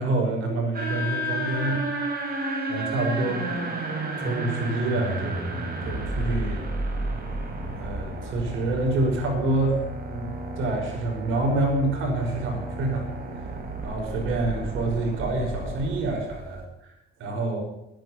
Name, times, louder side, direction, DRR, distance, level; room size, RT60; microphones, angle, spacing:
voice 1, 0.0-1.8 2.7-3.4 4.2-5.5 5.8-6.7 7.8-9.8 10.1-13.1 13.4-13.5 13.8-16.6 17.2-17.6, right 2 dB, 85° right, 1 dB, 5.4 m, -27 dB
sound 1, 0.7-16.6, right 1 dB, 50° right, 4.5 m, -32 dB
12.0 x 10.5 x 9.5 m, 0.88 s
cardioid pair, 90°, 20 cm